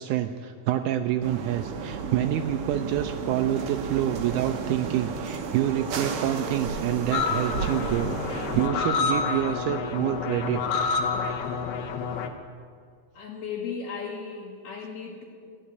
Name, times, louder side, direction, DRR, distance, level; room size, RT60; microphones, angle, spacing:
voice 1, 0.0-10.6, right 11 dB, 85° right, 7 dB, 1.8 m, -27 dB
sound 1, 1.2-8.7, right 5 dB, 65° right, 1.5 m, -33 dB
sound 2, 7.1-12.3, left 5 dB, 80° left, 2.8 m, -28 dB
voice 2, 13.1-15.2, left 6 dB, 60° left, -4 dB, 2.4 m, -35 dB
13.5 x 10.0 x 9.3 m, 2.1 s
omnidirectional pair, 4.3 m